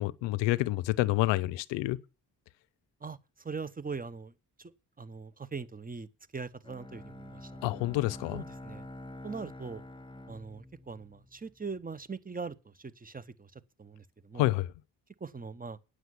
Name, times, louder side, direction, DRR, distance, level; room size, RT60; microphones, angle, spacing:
voice 1, 0.0-2.0 7.6-8.4 14.3-14.7, left 17 dB, 85° left, 0.6 m, -28 dB
voice 2, 3.4-4.3 4.6-4.7 5.0-6.1 6.3-7.6 8.3-8.8 9.2-9.8 10.3-13.5 13.8-14.5 15.2-15.8, right 4 dB, 20° right, 0.9 m, -41 dB
Bowed string instrument, 6.6-11.6, left 1 dB, 10° left, 0.9 m, -47 dB
9.3 x 6.5 x 8.2 m
supercardioid pair, 55°, 43 cm